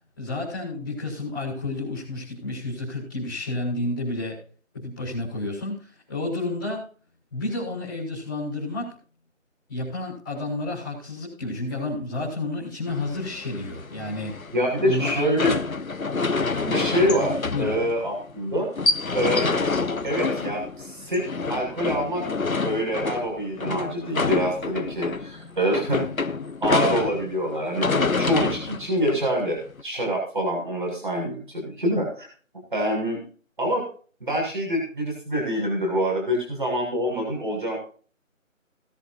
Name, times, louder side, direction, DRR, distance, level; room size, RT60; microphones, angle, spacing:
voice 1, 0.2-4.4 4.7-6.8 7.3-9.0 9.7-14.3 14.8-15.5 17.5-17.8, left 2 dB, 5° left, -9 dB, 4.8 m, -30 dB
sound 1, 12.9-29.8, left 4 dB, 85° left, 1.3 m, -27 dB
voice 2, 14.5-15.6 16.6-18.7 19.1-19.6 20.0-22.3 22.6-26.2 26.6-32.3 32.7-33.2 33.6-33.8 34.2-37.8, equal, 35° right, 0 dB, 7.0 m, -26 dB
20.0 x 11.0 x 2.7 m, 0.41 s
figure-of-eight pair, 180°, 40 cm